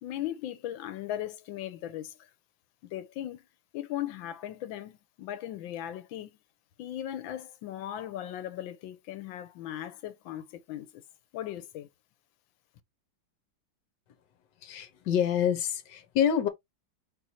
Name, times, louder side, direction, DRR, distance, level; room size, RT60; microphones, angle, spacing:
voice 1, 0.0-2.3 2.8-3.5 3.7-6.4 6.8-11.0 11.3-11.9, left 12 dB, 90° left, 1.5 m, -38 dB
voice 2, 14.6-16.5, left 9 dB, 70° left, 1.5 m, -27 dB
4.4 x 2.6 x 4.2 m
omnidirectional pair, 2.0 m